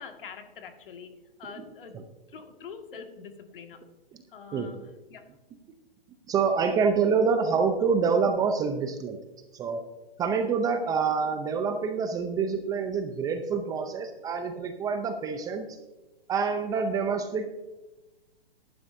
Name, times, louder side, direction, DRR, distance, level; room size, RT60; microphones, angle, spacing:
voice 1, 0.0-2.0 2.3-3.8 4.3-5.2, left 6 dB, 60° left, 5 dB, 1.9 m, -45 dB
voice 2, 6.3-9.2 9.5-9.8 10.2-15.7 16.3-17.5, right 5 dB, 10° right, 6 dB, 0.5 m, -26 dB
14.5 x 11.0 x 2.6 m, 1.1 s
hypercardioid pair, 140°, 30 cm